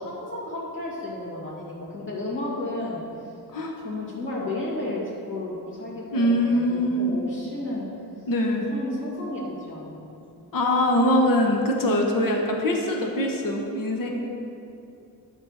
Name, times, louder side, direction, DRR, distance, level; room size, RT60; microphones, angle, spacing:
voice 1, 0.0-3.0 3.8-7.9 8.7-10.1 14.0-14.1, left 2 dB, 30° left, -6 dB, 2.4 m, -33 dB
voice 2, 6.1-7.2 8.3-8.7 10.5-14.1, left 1 dB, 55° left, 1 dB, 1.1 m, -23 dB
11.5 x 4.5 x 6.5 m, 2.7 s
wide cardioid pair, 155°, 39 cm